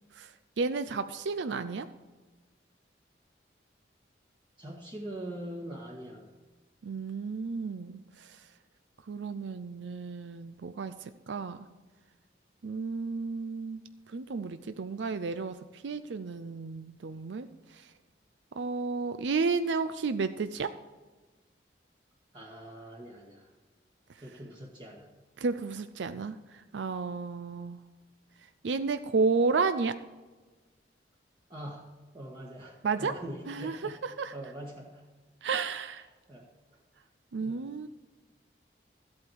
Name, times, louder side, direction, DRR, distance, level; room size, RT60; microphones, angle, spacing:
voice 1, 0.1-1.9 6.8-8.5 9.1-11.7 12.6-13.8 14.1-17.9 18.6-20.7 25.4-27.8 28.6-30.0 32.8-33.2 33.5-34.3 35.4-36.1 37.3-37.9, right 4 dB, 85° right, 11 dB, 0.5 m, -32 dB
voice 2, 4.6-6.3 22.3-23.5 24.2-25.1 31.5-34.0 34.3-35.1 36.3-36.5 37.4-37.7, right 1 dB, 25° right, -3 dB, 1.5 m, -43 dB
13.5 x 8.5 x 4.7 m, 1.3 s
head